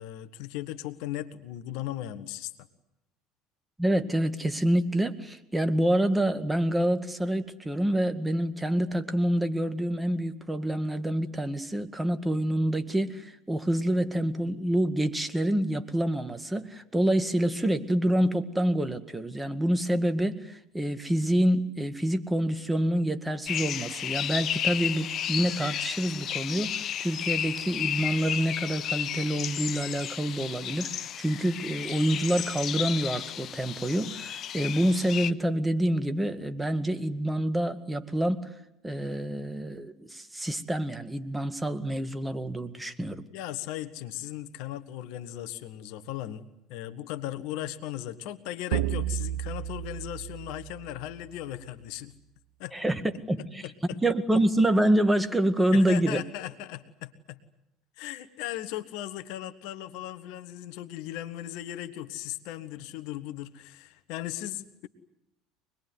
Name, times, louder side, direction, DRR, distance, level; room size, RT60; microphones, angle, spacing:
voice 1, 0.0-2.5 43.3-46.4 46.7-52.1 52.6-53.0 53.6-54.0 55.7-57.4 58.0-64.9, left 13 dB, 65° left, 12 dB, 1.4 m, -37 dB
voice 2, 3.8-38.5 38.8-43.2 52.7-53.0 53.3-53.6 54.0-56.2, right 1 dB, 10° right, 10 dB, 2.1 m, -27 dB
sound 1, 23.5-35.3, left 10 dB, 50° left, 1.0 m, -33 dB
sound 2, 48.7-51.3, right 12 dB, 80° right, 0.9 m, -32 dB
25.0 x 21.0 x 9.5 m, 0.83 s
hypercardioid pair, 70°, 0 cm